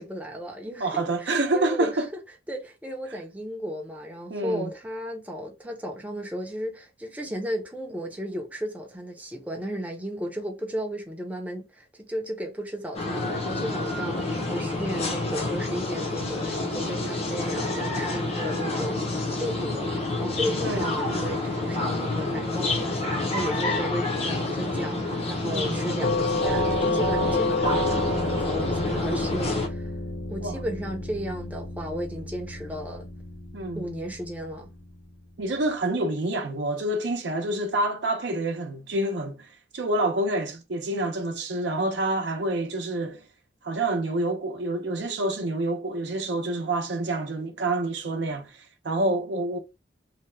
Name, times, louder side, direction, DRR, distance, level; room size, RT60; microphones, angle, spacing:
voice 1, 0.0-2.0 2.5-29.9 30.3-33.1 33.7-34.7, equal, 10° right, 0.5 m, -34 dB
voice 2, 0.8-2.1 4.3-4.7 20.6-20.9 25.5-25.8 30.4-30.6 33.5-33.8 35.4-43.2 43.6-49.6, right 2 dB, 70° right, 0.6 m, -27 dB
sound 1, 12.9-29.7, left 2 dB, 35° left, 0.6 m, -28 dB
Doorbell, 26.0-34.9, left 2 dB, 75° left, 0.6 m, -30 dB
2.8 x 2.2 x 3.2 m
head